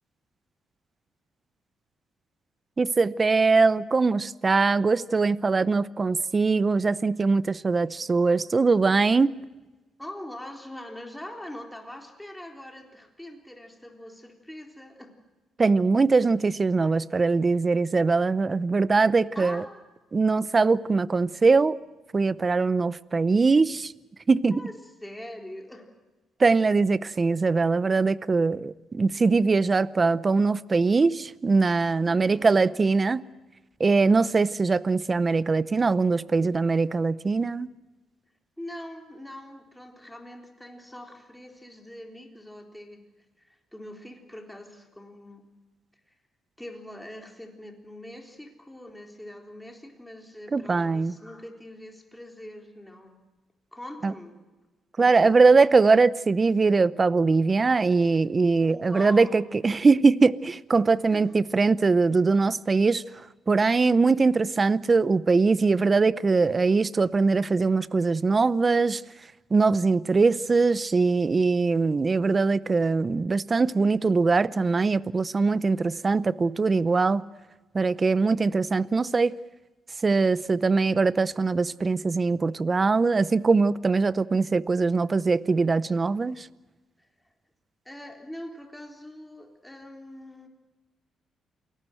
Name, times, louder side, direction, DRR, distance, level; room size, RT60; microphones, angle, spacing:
voice 1, 2.8-9.4 15.6-19.6 20.1-21.8 22.1-23.9 24.3-24.6 26.4-33.2 33.8-37.7 50.5-51.1 54.0-54.1 55.0-63.0 63.5-69.0 69.5-77.2 77.7-79.4 80.0-86.5, right 4 dB, 30° right, 0.7 m, -22 dB
voice 2, 10.0-15.1 19.4-19.8 24.5-24.8 25.0-25.9 32.0-32.7 38.6-43.0 43.4-45.4 46.1-46.2 46.6-53.1 53.7-54.4 55.0-55.3 58.6-59.5 60.8-60.9 61.1-61.2 87.0-87.1 87.9-90.5, left 1 dB, 5° left, 3.7 m, -43 dB
28.0 x 18.5 x 7.8 m
cardioid pair, 90°, 0 cm